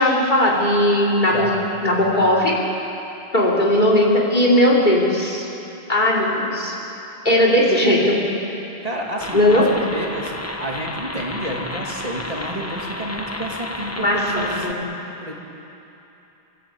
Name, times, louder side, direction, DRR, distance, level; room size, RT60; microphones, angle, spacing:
voice 1, 0.0-1.5 1.8-2.6 3.3-5.5 5.9-6.8 7.2-8.1 9.3-9.7 14.0-14.8, left 1 dB, 50° left, -2 dB, 3.7 m, -18 dB
voice 2, 1.2-2.3 7.8-8.1 8.8-10.3 10.6-14.9 15.2-15.3, right 1 dB, 40° right, -2 dB, 2.6 m, -30 dB
sound 1, 9.2-14.7, left 1 dB, 15° left, 1.2 m, -31 dB
29.0 x 14.5 x 8.6 m, 3.0 s
omnidirectional pair, 1.0 m